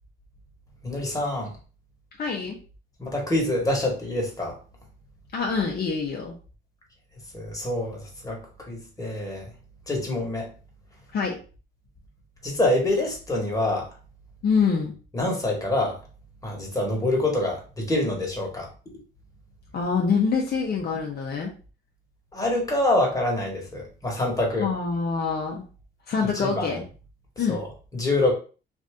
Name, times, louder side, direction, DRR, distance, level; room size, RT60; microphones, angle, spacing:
voice 1, 0.8-1.5 3.0-4.6 7.3-8.4 8.7-9.4 9.9-10.5 12.4-13.9 15.1-16.0 16.4-18.7 22.3-24.7 26.3-26.7 27.4-27.7 27.9-28.3, left 1 dB, 15° left, -1 dB, 1.4 m, -26 dB
voice 2, 2.2-2.6 5.3-6.3 11.1-11.4 14.4-15.0 19.7-21.5 24.6-25.6 26.1-26.8 27.4-27.6, left 5 dB, 50° left, 0 dB, 0.7 m, -25 dB
2.6 x 2.6 x 3.4 m, 0.36 s
cardioid pair, 90°, 20 cm